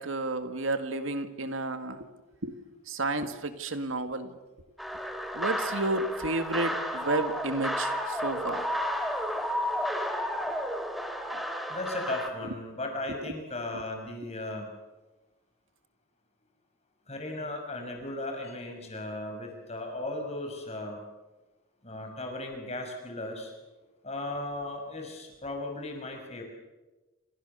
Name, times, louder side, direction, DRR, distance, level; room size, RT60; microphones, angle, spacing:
voice 1, 0.0-2.1 2.4-2.6 2.9-4.3 5.3-8.7 13.2-13.3 13.7-13.8, right 2 dB, 70° right, 8 dB, 2.0 m, -31 dB
sound 1, 4.8-12.3, equal, ahead, 2.9 m, -32 dB
voice 2, 11.7-14.7 17.1-21.0 21.8-23.5 24.0-26.4, left 2 dB, 30° left, 3 dB, 6.2 m, -36 dB
29.0 x 28.0 x 6.9 m, 1.1 s
head